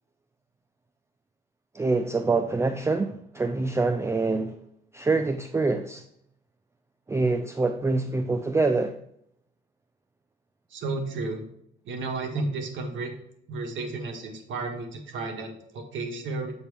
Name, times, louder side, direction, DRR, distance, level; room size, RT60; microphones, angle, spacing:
voice 1, 1.7-4.6 4.9-6.0 7.1-8.9, right 3 dB, 15° right, 0.4 m, -25 dB
voice 2, 10.7-11.4 11.8-13.1 13.5-16.5, right 3 dB, 75° right, 1.5 m, -32 dB
8.1 x 4.4 x 3.4 m
cardioid pair, 90°, 20 cm